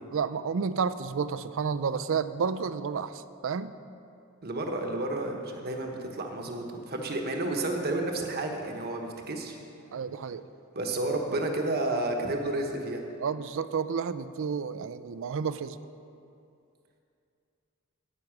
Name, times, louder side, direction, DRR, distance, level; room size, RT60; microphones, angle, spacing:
voice 1, 0.1-3.7 9.9-10.4 13.2-15.8, right 6 dB, 65° right, 14 dB, 0.4 m, -31 dB
voice 2, 4.4-9.6 10.7-13.0, right 2 dB, 50° right, 3 dB, 1.2 m, -31 dB
10.0 x 9.2 x 6.0 m, 2.6 s
head